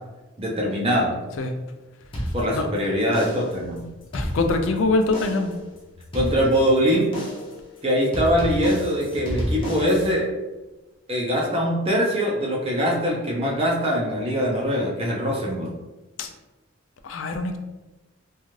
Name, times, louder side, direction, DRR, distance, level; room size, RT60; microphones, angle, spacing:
voice 1, 0.4-1.2 2.3-3.8 6.1-7.1 7.8-10.3 11.1-15.7, equal, 30° right, -2 dB, 0.5 m, -22 dB
sound 1, 2.1-2.8 3.1-3.6 4.0-4.8 5.1-5.6 6.1-6.8 7.1-7.6 8.1-10.1, equal, 25° left, 0.6 m, -30 dB
voice 2, 4.1-5.5 16.2-16.3 17.0-17.6, left 3 dB, 70° left, 6 dB, 0.4 m, -23 dB
2.6 x 2.3 x 3.1 m, 1.1 s
head